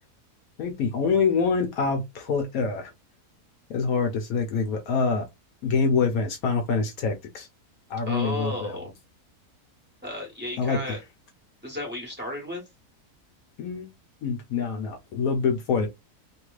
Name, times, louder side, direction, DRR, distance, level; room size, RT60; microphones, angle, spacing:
voice 1, 0.6-2.9 3.7-5.3 5.6-7.5 7.9-8.8 10.6-11.0 13.6-13.9 14.2-15.9, left 5 dB, 70° left, 1.0 m, -25 dB
voice 2, 8.1-8.9 10.0-11.0 11.6-12.6, left 1 dB, 5° right, 1.2 m, -33 dB
3.1 x 2.9 x 2.3 m
omnidirectional pair, 1.7 m